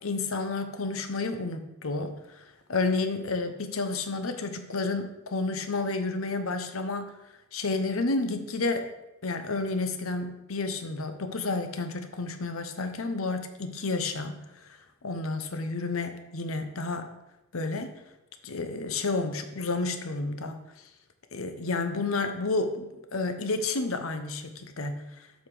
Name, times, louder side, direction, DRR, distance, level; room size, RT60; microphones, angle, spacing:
voice 1, 0.0-2.4 2.7-7.1 7.5-8.9 9.2-14.8 15.0-17.1 17.5-17.9 18.4-20.6 21.3-25.0, left 3 dB, 85° left, 8 dB, 0.8 m, -31 dB
7.3 x 5.7 x 4.9 m, 0.93 s
head